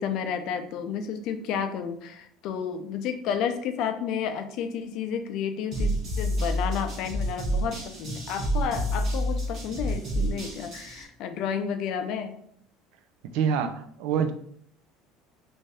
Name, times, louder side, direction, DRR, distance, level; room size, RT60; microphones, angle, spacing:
voice 1, 0.0-12.4, left 7 dB, 55° left, 8 dB, 0.4 m, -31 dB
sound 1, 5.7-11.0, equal, 45° right, 1.2 m, -29 dB
voice 2, 13.3-14.3, right 7 dB, 75° right, 9 dB, 0.4 m, -26 dB
3.2 x 2.6 x 3.3 m, 0.65 s
cardioid pair, 145°, 0 cm